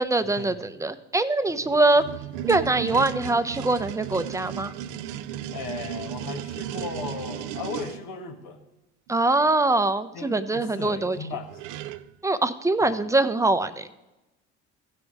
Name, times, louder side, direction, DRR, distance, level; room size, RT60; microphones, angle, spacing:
voice 1, 0.0-2.0 2.4-4.7 9.1-11.2 12.2-13.9, right 2 dB, 10° right, 11 dB, 0.7 m, -23 dB
sound 1, 1.5-8.0 11.1-11.2 11.5-12.1, right 11 dB, 75° right, 0.5 m, -35 dB
voice 2, 5.5-8.6 10.1-11.5 12.0-12.1 12.8-13.0, left 5 dB, 75° left, 3 dB, 1.7 m, -36 dB
15.5 x 5.4 x 4.7 m, 0.99 s
supercardioid pair, 70°, 31 cm